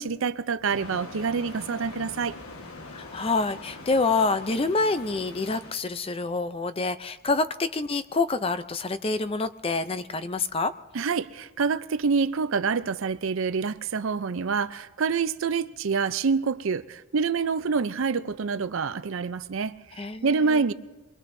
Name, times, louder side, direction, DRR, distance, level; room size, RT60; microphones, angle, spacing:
voice 1, 0.0-2.4 10.9-20.7, right 5 dB, 65° right, 0.5 m, -27 dB
sound 1, 0.7-5.7, left 2 dB, 85° left, 1.4 m, -43 dB
voice 2, 2.9-10.7 20.0-20.6, left 3 dB, 25° left, 0.5 m, -27 dB
23.0 x 23.0 x 2.7 m
head